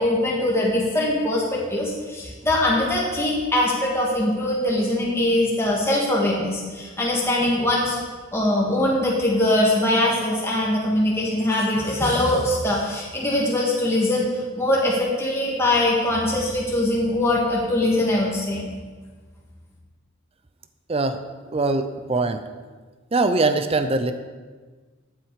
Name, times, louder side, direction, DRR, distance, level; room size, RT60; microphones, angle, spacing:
voice 1, 0.0-8.0 8.3-14.3 14.6-18.6, left 1 dB, 10° left, -4 dB, 1.9 m, -22 dB
voice 2, 20.9-21.2 21.5-22.4 23.1-24.1, right 3 dB, 30° right, 10 dB, 0.6 m, -22 dB
14.0 x 9.3 x 4.8 m, 1.4 s
head